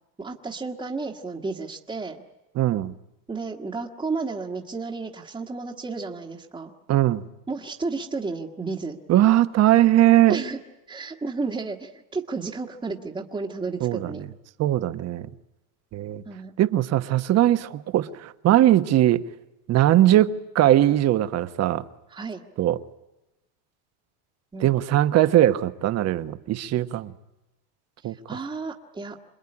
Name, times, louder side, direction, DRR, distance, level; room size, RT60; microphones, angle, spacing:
voice 1, 0.2-2.2 3.3-6.7 7.5-9.0 10.3-10.6 10.9-14.2 16.2-16.5 22.1-22.4 24.5-24.8 28.0-29.2, right 4 dB, 10° right, 1.5 m, -32 dB
voice 2, 2.5-2.9 6.9-7.2 9.1-10.4 13.8-14.3 14.6-15.3 15.9-16.2 16.6-19.2 19.7-21.8 22.6-22.8 24.6-27.1 28.0-28.2, right 13 dB, 35° right, 1.1 m, -20 dB
27.0 x 20.5 x 9.8 m
supercardioid pair, 135°, 44 cm